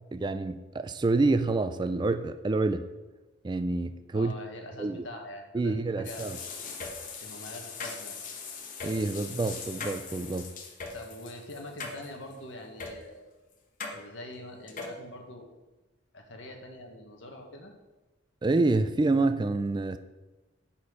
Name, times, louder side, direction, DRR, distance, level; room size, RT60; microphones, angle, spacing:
voice 1, 0.1-2.9 3.4-4.3 4.8-5.0 5.5-6.4 8.8-10.5 18.4-20.0, right 3 dB, 25° right, 0.3 m, -27 dB
voice 2, 4.1-6.3 7.2-8.2 10.9-13.3 13.9-15.4 16.1-17.7, left 1 dB, 70° left, 1.4 m, -44 dB
sound 1, 6.0-12.3 12.8-12.9 13.8-14.0 14.7-15.0, left 4 dB, 45° left, 1.0 m, -40 dB
9.6 x 4.3 x 5.5 m
head